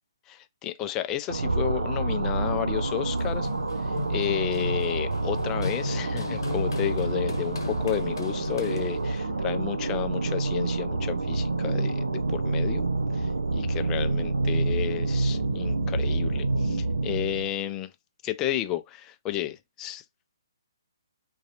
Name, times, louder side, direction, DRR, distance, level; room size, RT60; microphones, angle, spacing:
voice 1, 0.3-3.5 3.8-12.8 13.1-17.9 18.2-20.0, left 12 dB, 20° left, 0.3 m, -32 dB
sound 1, 1.3-17.5, right 2 dB, 85° right, 0.5 m, -28 dB
Run, 2.8-9.2, left 4 dB, 75° left, 0.9 m, -37 dB
2.5 x 2.3 x 2.8 m
hypercardioid pair, 140°, 2 cm